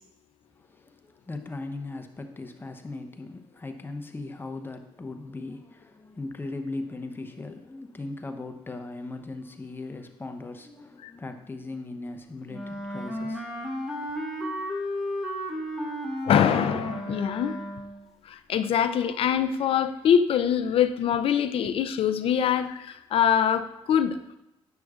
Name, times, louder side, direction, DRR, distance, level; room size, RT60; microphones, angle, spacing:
voice 1, 0.6-13.5, left 2 dB, 20° left, 6 dB, 0.8 m, -38 dB
Wind instrument woodwind instrument, 12.5-18.0, equal, 5° right, 1.4 m, -33 dB
voice 2, 16.3-17.6 18.2-24.2, left 8 dB, 60° left, 11 dB, 0.5 m, -24 dB
9.3 x 6.0 x 2.4 m, 0.88 s
supercardioid pair, 70°, 11 cm